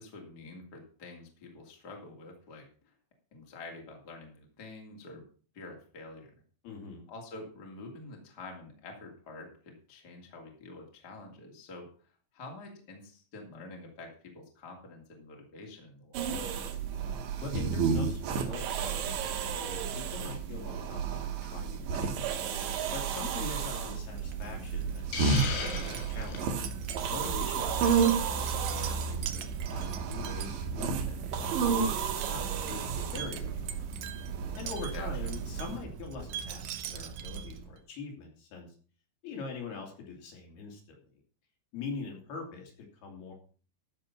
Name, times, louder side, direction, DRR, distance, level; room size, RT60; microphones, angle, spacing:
voice 1, 0.0-2.9 3.3-5.3 5.5-6.3 7.1-11.9 12.3-16.6 24.5-25.3 34.9-35.4, left 2 dB, 25° left, 1 dB, 2.6 m, -47 dB
voice 2, 6.6-7.0 17.4-22.2 22.9-25.8 26.1-26.4 27.1-33.8 34.6-38.7 39.2-40.8 41.7-43.3, left 4 dB, 65° left, 1 dB, 4.4 m, -43 dB
sound 1, 16.1-35.8, right 6 dB, 90° right, 3.6 m, -32 dB
Wind chime, 24.1-37.8, right 4 dB, 70° right, 2.5 m, -40 dB
Hiss, 25.1-26.5, left 4 dB, 90° left, 5.2 m, -35 dB
13.0 x 6.9 x 5.9 m, 0.41 s
omnidirectional pair, 5.0 m